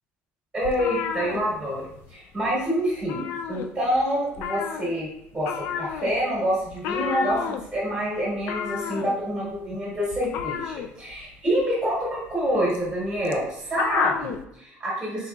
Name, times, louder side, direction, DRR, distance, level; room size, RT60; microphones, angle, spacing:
voice 1, 0.5-1.8 2.1-15.3, equal, 10° right, -6 dB, 1.2 m, -27 dB
sound 1, 0.6-2.1 2.4-2.6 2.9-4.0 4.3-14.4, left 7 dB, 65° left, 0.3 m, -32 dB
4.3 x 3.6 x 2.3 m, 0.76 s
cardioid pair, 160°, 4 cm